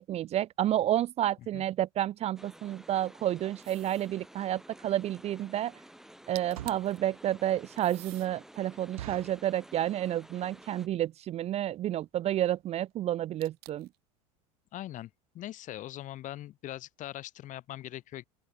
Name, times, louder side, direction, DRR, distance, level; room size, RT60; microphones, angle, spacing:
voice 1, 0.0-5.7 6.3-13.9, right 12 dB, 35° right, 0.5 m, -30 dB
sound 1, 2.4-10.9, right 1 dB, ahead, 6.2 m, -53 dB
sound 2, 3.6-4.1 6.1-6.2 6.3-7.0 7.8-8.3 9.0-10.4 13.4-14.0, right 23 dB, 60° right, 2.8 m, -50 dB
sound 3, 4.9-5.0 5.4-5.6 6.3-7.0 7.5-7.6 7.9-8.0 8.4-8.5 9.0-9.5 10.1-10.4 10.6-10.7 11.0-11.2 11.8-11.9 12.1-12.3 12.6-12.7 12.9-13.0, right 14 dB, 90° right, 1.3 m, -44 dB
voice 2, 14.7-18.2, left 14 dB, 45° left, 1.4 m, -41 dB
open air
supercardioid pair, 105°, 18 cm